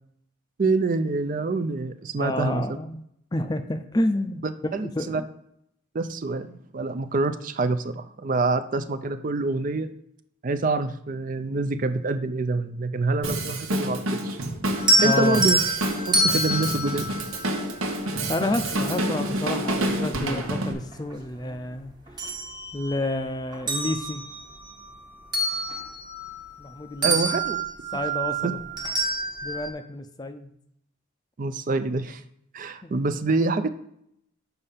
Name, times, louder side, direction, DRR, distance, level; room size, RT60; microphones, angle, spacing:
voice 1, 0.6-2.6 4.7-5.2 5.9-9.9 10.4-14.4 15.0-15.6 16.1-17.0 27.0-27.6 28.4-28.5 31.4-32.2 32.5-33.7, right 3 dB, 40° right, 10 dB, 0.4 m, -26 dB
voice 2, 2.2-3.0 3.3-4.4 4.8-5.3 15.0-15.4 18.3-21.9 22.7-24.2 26.6-27.2 27.9-28.6 29.4-30.5 32.8-33.0, left 1 dB, 20° left, 9 dB, 0.5 m, -29 dB
Drum kit, 13.2-20.7, right 1 dB, 85° right, 1.1 m, -28 dB
sound 1, 14.7-18.1 19.7-19.8 20.3-21.6 21.9-23.2 23.5-26.7 27.0-29.7, right 1 dB, 20° right, 0.9 m, -27 dB
6.9 x 5.4 x 5.6 m, 0.73 s
head